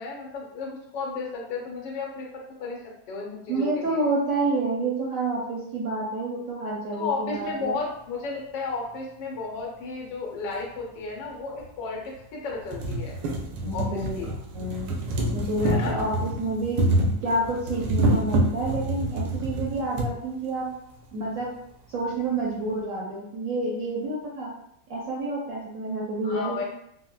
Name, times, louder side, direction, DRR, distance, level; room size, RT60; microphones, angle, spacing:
voice 1, 0.0-4.0 6.9-13.2 13.7-14.3 15.6-16.1 26.2-26.6, left 4 dB, 85° left, -1 dB, 1.4 m, -33 dB
voice 2, 3.5-7.8 13.6-14.1 14.5-14.9 15.3-16.8 17.2-20.7 21.1-21.5 21.9-24.5 24.9-26.6, right 2 dB, 65° right, -4 dB, 0.8 m, -28 dB
sound 1, 10.5-10.6 11.6-11.7 12.1-12.2 12.5-20.1 21.0-21.1 21.4-21.5, right 1 dB, 85° right, 1.3 m, -27 dB
4.0 x 2.0 x 2.2 m, 0.75 s
omnidirectional pair, 1.9 m